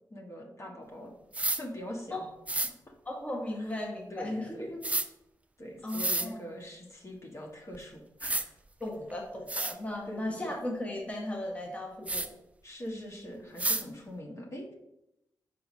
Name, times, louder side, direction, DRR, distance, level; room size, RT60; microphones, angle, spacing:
voice 1, 0.1-2.3 2.6-2.7 3.6-3.7 4.1-4.7 5.6-8.5 10.1-10.5 12.6-14.7, equal, 45° left, 0 dB, 1.5 m, -43 dB
sound 1, 1.3-1.6 2.5-2.7 4.8-5.1 5.9-6.3 7.7-7.8 8.2-8.4 9.1-9.2 9.5-9.7 12.1-12.3 13.6-13.8, right 2 dB, 20° right, 0.6 m, -30 dB
voice 2, 3.0-4.8 5.8-6.4 8.8-12.3, left 1 dB, 20° left, 0 dB, 1.4 m, -36 dB
4.8 x 4.6 x 5.5 m, 0.86 s
cardioid pair, 60°, 7 cm